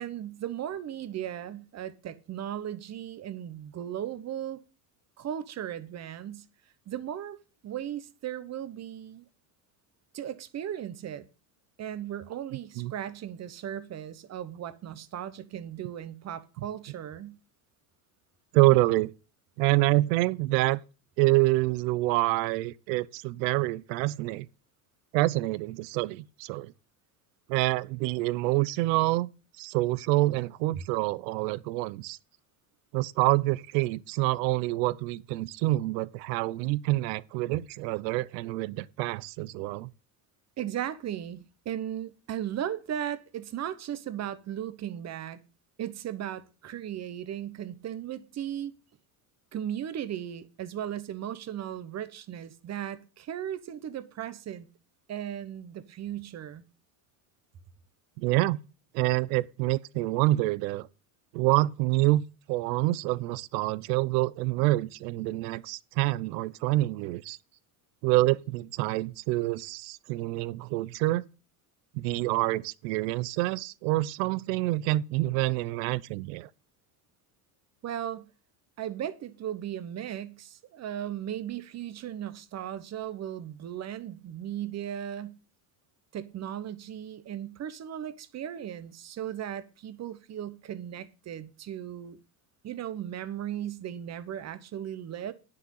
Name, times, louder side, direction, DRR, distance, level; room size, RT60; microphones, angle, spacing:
voice 1, 0.0-4.6 5.2-6.5 6.9-7.4 7.6-9.2 10.1-11.3 11.8-17.4 30.7-30.8 40.6-45.4 45.8-48.7 49.5-54.7 55.1-56.6 77.8-78.3 78.8-85.4 86.1-92.2 92.6-95.3, right 10 dB, 30° right, 1.0 m, -36 dB
voice 2, 18.5-19.1 19.6-20.8 21.2-24.5 25.1-26.7 27.5-29.3 29.6-32.2 32.9-39.9 58.2-58.6 58.9-60.9 61.3-67.4 68.0-71.2 71.9-76.5, right 19 dB, 80° right, 0.7 m, -27 dB
9.9 x 6.7 x 5.6 m
cardioid pair, 135°, 50 cm